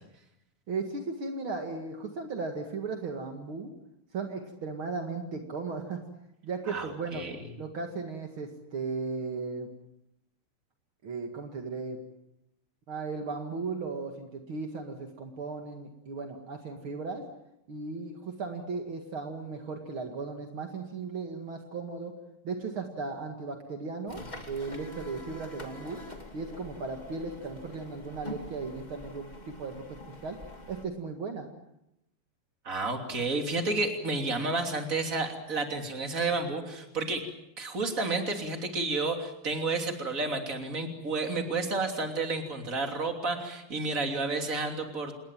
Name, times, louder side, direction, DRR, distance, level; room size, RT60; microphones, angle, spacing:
voice 1, 0.7-3.7 4.1-6.0 6.4-7.2 7.6-9.7 11.0-12.0 12.9-17.2 17.7-22.1 22.4-26.0 26.3-30.0 30.2-30.4 30.7-31.5, right 4 dB, 65° right, 3 dB, 1.3 m, -36 dB
voice 2, 6.7-7.3 32.6-37.3 37.6-45.1, right 3 dB, 20° right, 3 dB, 2.4 m, -31 dB
sound 1, 24.1-30.8, left 1 dB, 35° left, 0.6 m, -45 dB
28.0 x 20.5 x 7.5 m, 0.84 s
omnidirectional pair, 5.6 m